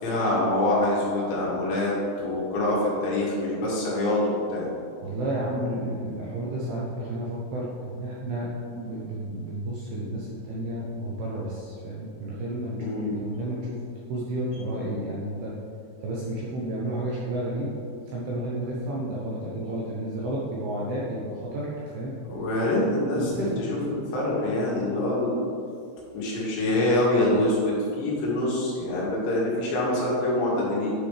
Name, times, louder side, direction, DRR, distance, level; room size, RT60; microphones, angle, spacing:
voice 1, 0.0-4.7 12.8-13.2 22.3-23.3 23.7-25.4 26.1-30.9, left 1 dB, 75° left, -5 dB, 3.8 m, -25 dB
voice 2, 5.0-13.8 14.1-15.5 16.0-17.7 18.1-22.2 23.2-23.7, right 1 dB, 75° right, -6 dB, 2.4 m, -31 dB
10.0 x 5.0 x 3.3 m, 2.4 s
omnidirectional pair, 5.5 m